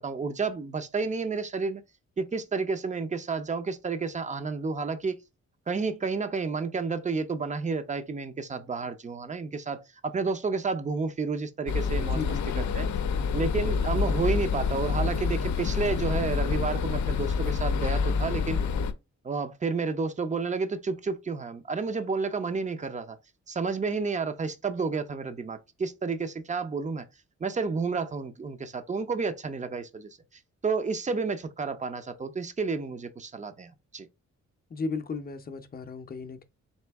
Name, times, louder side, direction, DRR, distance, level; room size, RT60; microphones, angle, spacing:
voice 1, 0.0-1.8 2.2-5.2 5.7-12.2 12.6-12.9 13.3-18.6 19.2-23.2 23.5-27.1 27.4-30.2 30.6-34.1, right 4 dB, 25° right, 0.5 m, -31 dB
sound 1, 11.7-18.9, left 5 dB, 75° left, 0.6 m, -27 dB
voice 2, 12.1-12.7 34.7-36.4, left 4 dB, 30° left, 0.6 m, -35 dB
4.2 x 2.7 x 3.4 m
wide cardioid pair, 115°, 29 cm